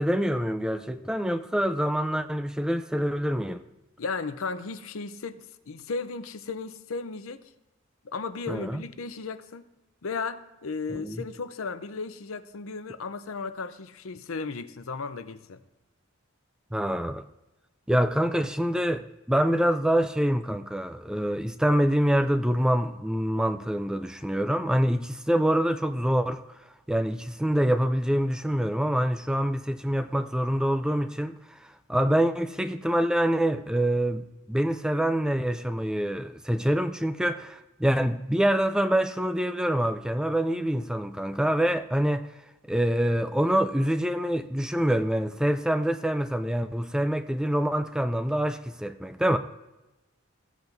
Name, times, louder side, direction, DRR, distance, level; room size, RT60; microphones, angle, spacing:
voice 1, 0.0-3.6 8.5-8.8 10.9-11.2 16.7-17.2 17.9-26.4 26.9-42.3 42.7-49.4, equal, 5° right, 0.3 m, -26 dB
voice 2, 4.0-7.4 8.0-9.7 10.0-15.6, left 4 dB, 75° left, 0.6 m, -35 dB
15.5 x 8.2 x 2.6 m
head